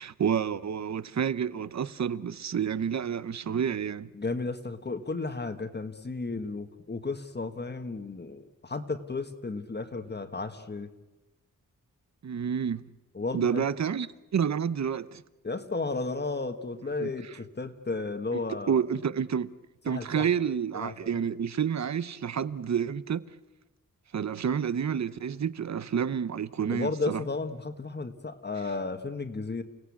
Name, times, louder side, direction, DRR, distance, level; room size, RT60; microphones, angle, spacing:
voice 1, 0.0-4.1 12.2-12.8 13.3-15.2 17.0-17.1 18.7-19.5 19.8-23.3 24.1-27.2, right 7 dB, 55° right, 0.8 m, -29 dB
voice 2, 4.1-10.9 13.1-13.6 15.4-18.8 19.9-20.3 20.7-21.2 26.7-29.6, left 3 dB, 30° left, 1.4 m, -33 dB
29.5 x 17.5 x 8.5 m
wide cardioid pair, 135°, 32 cm